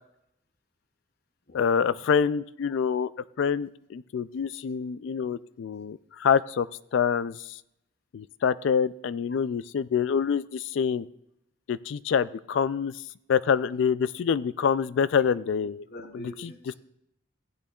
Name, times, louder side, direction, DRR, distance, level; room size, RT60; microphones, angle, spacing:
voice 1, 1.5-3.1 3.4-7.6 8.1-11.1 11.7-13.0 13.3-15.8, left 7 dB, 65° left, 17 dB, 0.3 m, -26 dB
voice 2, 15.6-16.7, equal, 50° left, 5 dB, 0.7 m, -44 dB
15.5 x 8.5 x 2.4 m, 0.79 s
head